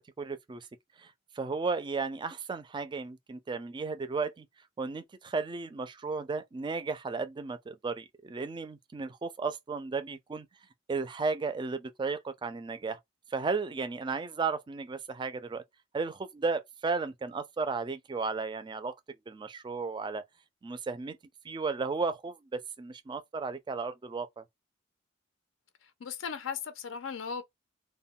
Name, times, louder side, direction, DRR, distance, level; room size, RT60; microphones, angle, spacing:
voice 1, 0.2-0.7 1.0-1.1 1.4-4.5 4.8-10.5 10.9-13.0 13.3-15.6 15.9-18.9 19.3-20.2 20.6-21.2 21.4-24.4, right 4 dB, 25° right, 0.3 m, -34 dB
voice 2, 25.8-27.4, left 6 dB, 85° left, 0.4 m, -37 dB
2.2 x 2.2 x 3.5 m
head